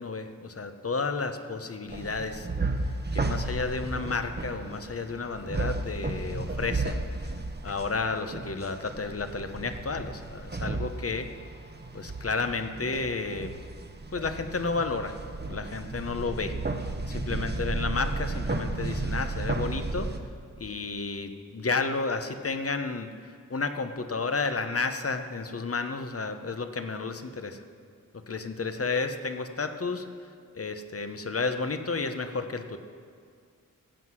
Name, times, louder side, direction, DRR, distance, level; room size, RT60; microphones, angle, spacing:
voice 1, 0.0-2.5 3.1-7.0 7.6-11.3 11.9-13.5 14.1-15.1 15.5-16.5 17.1-20.1 20.6-23.1 23.5-27.6 28.1-30.0 30.5-32.8, left 4 dB, 45° left, 8 dB, 0.9 m, -31 dB
sound 1, 1.9-20.2, right 3 dB, 30° right, 0.9 m, -33 dB
15.0 x 7.9 x 6.2 m, 2.2 s
wide cardioid pair, 70°, 34 cm